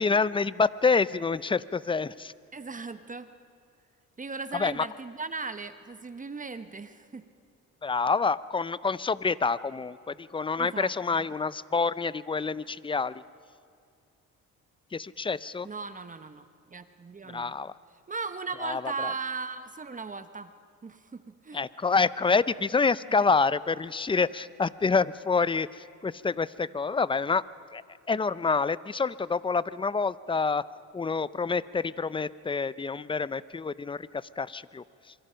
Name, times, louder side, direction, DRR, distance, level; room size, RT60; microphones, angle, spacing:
voice 1, 0.0-2.3 4.5-4.9 7.8-13.2 14.9-15.7 17.3-17.7 18.6-19.1 21.5-27.4 27.7-27.8 28.1-30.6 30.9-35.1, left 4 dB, 15° left, 18 dB, 0.5 m, -27 dB
voice 2, 2.5-3.3 4.2-7.2 10.6-10.9 15.6-17.5 18.1-20.5 20.8-21.6, right 4 dB, 25° right, 10 dB, 1.0 m, -37 dB
26.5 x 24.0 x 5.7 m, 2.3 s
cardioid pair, 90°, 30 cm